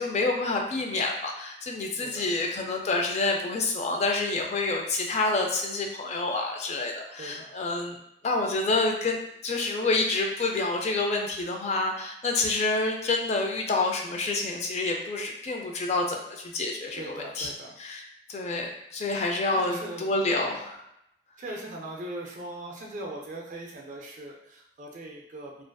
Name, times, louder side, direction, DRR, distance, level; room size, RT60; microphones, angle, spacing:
voice 1, 0.0-8.0 8.2-9.2 9.4-17.5 17.8-18.0 18.3-20.8, left 3 dB, 40° left, 1 dB, 0.3 m, -28 dB
voice 2, 7.2-7.5 17.0-17.8 19.5-20.1 20.4-20.5 21.4-25.6, right 1 dB, 45° right, -1 dB, 0.4 m, -40 dB
2.4 x 2.4 x 2.2 m, 0.78 s
head